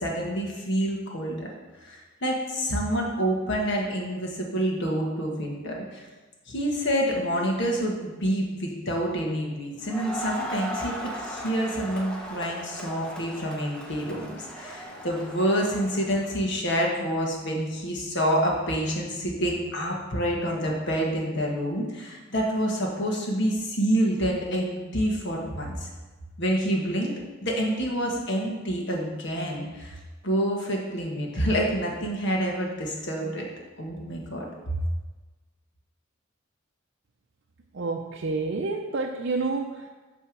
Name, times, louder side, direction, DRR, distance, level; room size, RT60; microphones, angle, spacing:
voice 1, 0.0-1.5 1.8-6.1 6.5-25.9 26.4-27.1 27.4-30.0 30.2-33.5 33.8-34.8, equal, 60° left, -1 dB, 1.5 m, -27 dB
Crowd, 9.8-16.4, equal, 5° left, 0.9 m, -37 dB
voice 2, 37.7-39.9, right 3 dB, 60° right, 0 dB, 0.5 m, -29 dB
8.8 x 3.5 x 6.1 m, 1.3 s
head